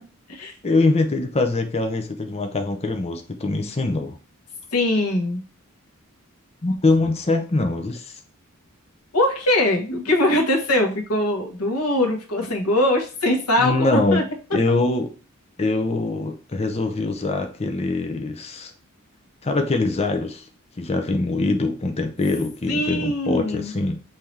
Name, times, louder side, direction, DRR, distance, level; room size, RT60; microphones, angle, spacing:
voice 1, 0.6-4.2 6.6-8.2 13.6-14.2 14.5-15.1 15.6-18.7 19.4-20.4 20.8-24.0, left 2 dB, 30° left, 4 dB, 0.6 m, -23 dB
voice 2, 4.7-5.4 9.1-14.2 22.7-23.7, left 1 dB, 90° left, 3 dB, 1.4 m, -22 dB
5.7 x 2.8 x 3.2 m, 0.35 s
head